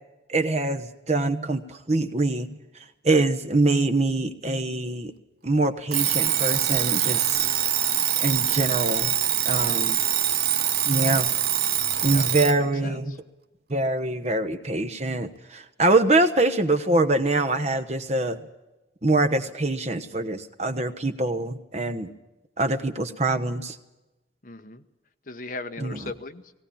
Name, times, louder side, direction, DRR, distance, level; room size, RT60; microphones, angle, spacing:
voice 1, 0.3-2.6 3.0-5.1 5.4-7.5 8.2-9.1 9.4-10.0 10.9-11.3 12.0-13.2 13.7-18.4 19.0-22.1 22.6-23.8 25.8-26.0, right 2 dB, 35° right, 9 dB, 1.2 m, -24 dB
Alarm, 5.9-12.6, right 11 dB, 55° right, 0.8 m, -24 dB
voice 2, 12.1-13.0 24.4-24.8 25.3-26.5, left 3 dB, 45° left, 8 dB, 1.1 m, -38 dB
18.5 x 17.0 x 8.7 m, 1.0 s
head